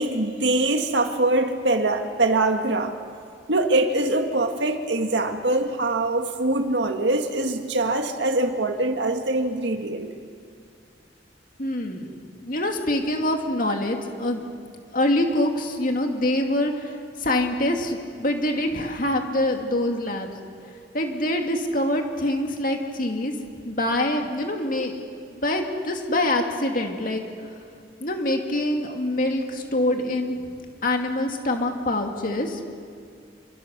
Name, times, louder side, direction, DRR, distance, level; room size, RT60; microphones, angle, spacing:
voice 1, 0.0-2.9 3.5-10.1, right 2 dB, 75° right, 5 dB, 1.8 m, -23 dB
voice 2, 11.6-12.1 12.4-14.4 14.9-20.3 20.9-23.3 23.6-24.9 25.3-27.6 28.0-30.4 30.8-32.6, left 1 dB, 50° left, 3 dB, 2.4 m, -25 dB
27.0 x 24.0 x 6.7 m, 2.3 s
head